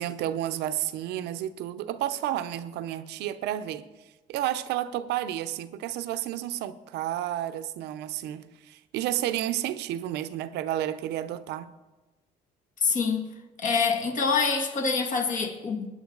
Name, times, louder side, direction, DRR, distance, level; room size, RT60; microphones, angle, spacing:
voice 1, 0.0-11.7, right 12 dB, 85° right, 0.7 m, -31 dB
voice 2, 12.8-13.2 13.6-15.9, left 5 dB, 50° left, 2.1 m, -25 dB
20.0 x 9.4 x 4.0 m
cardioid pair, 110°, 17 cm